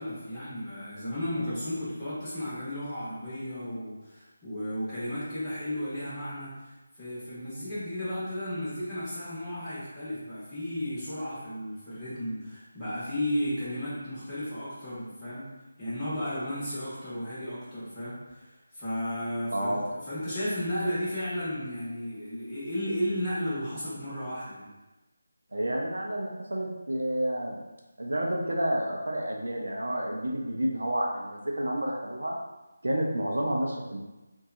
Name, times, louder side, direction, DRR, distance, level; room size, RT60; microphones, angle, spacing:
voice 1, 0.0-15.4 15.8-19.7 20.1-24.7, equal, 10° left, -14 dB, 1.2 m, -34 dB
voice 2, 19.5-19.8 25.5-27.6 28.0-32.3 32.8-34.0, right 1 dB, 75° right, -1 dB, 0.5 m, -30 dB
2.8 x 2.2 x 2.5 m, 1.1 s
figure-of-eight pair, 160°, 0 cm